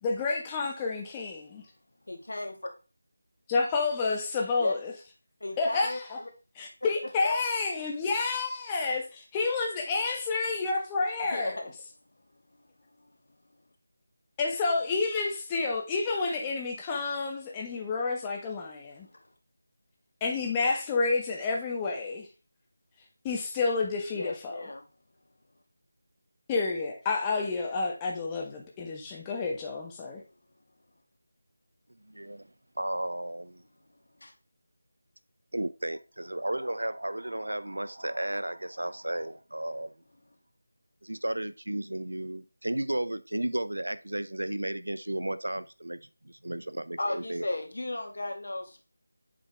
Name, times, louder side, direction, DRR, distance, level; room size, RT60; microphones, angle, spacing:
voice 1, 0.0-1.6 3.5-4.9 5.6-6.2 6.6-11.6 14.4-19.1 20.2-22.3 23.2-24.6 26.5-30.2, left 4 dB, 15° left, 1.1 m, -29 dB
voice 2, 2.1-2.7 4.6-4.8 5.4-6.3 6.8-6.9 7.2-7.3 11.2-11.6 19.1-19.2 24.1-24.9 34.2-34.3 47.0-48.8, left 2 dB, 70° left, 1.9 m, -35 dB
voice 3, 32.1-32.5 32.8-33.6 35.5-39.9 41.0-47.5, right 1 dB, 85° right, 0.6 m, -33 dB
7.6 x 4.4 x 3.3 m
figure-of-eight pair, 165°, 0 cm